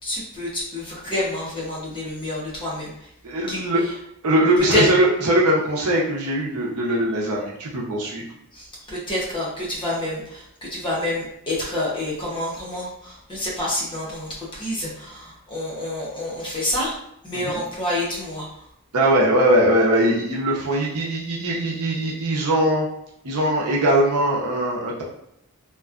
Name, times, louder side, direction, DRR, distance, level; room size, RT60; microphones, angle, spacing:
voice 1, 0.0-3.1 3.5-3.9 4.7-4.8 8.5-16.9 17.2-18.7, left 1 dB, 20° left, -5 dB, 0.7 m, -28 dB
voice 2, 3.2-3.8 4.2-8.2 17.3-17.6 18.9-22.9 23.2-25.0, right 1 dB, 85° right, -3 dB, 0.7 m, -21 dB
2.9 x 2.3 x 2.4 m, 0.77 s
head